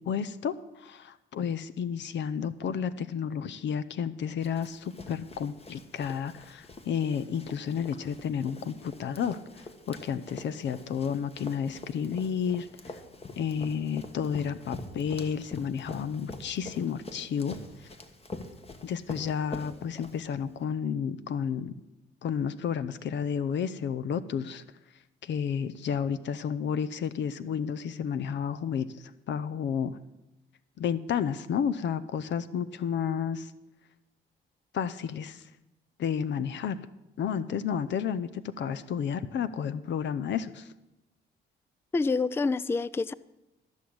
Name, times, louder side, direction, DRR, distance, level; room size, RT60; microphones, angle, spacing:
voice 1, 0.1-13.0 13.4-17.9 18.8-21.7 22.2-24.6 25.2-30.0 30.8-33.5 34.7-35.5 36.0-36.8 37.2-40.7, left 7 dB, 65° left, 15 dB, 0.7 m, -31 dB
Run, 4.4-20.6, left 2 dB, 30° left, 1.5 m, -45 dB
voice 2, 41.9-43.1, left 4 dB, 10° left, 19 dB, 0.3 m, -27 dB
13.5 x 6.3 x 8.6 m, 0.96 s
cardioid pair, 90°, 20 cm